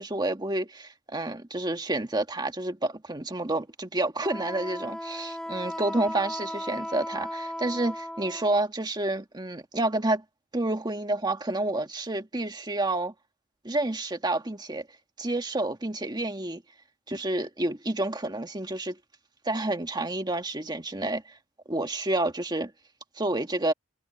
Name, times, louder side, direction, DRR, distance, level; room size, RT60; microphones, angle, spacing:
voice 1, 0.0-10.2 10.5-13.1 13.6-14.9 15.2-16.6 17.1-19.0 19.5-21.4 21.7-22.7 23.2-23.7, right 2 dB, 20° right, 1.6 m, -29 dB
Wind instrument woodwind instrument, 4.2-8.6, equal, 5° left, 0.5 m, -36 dB
head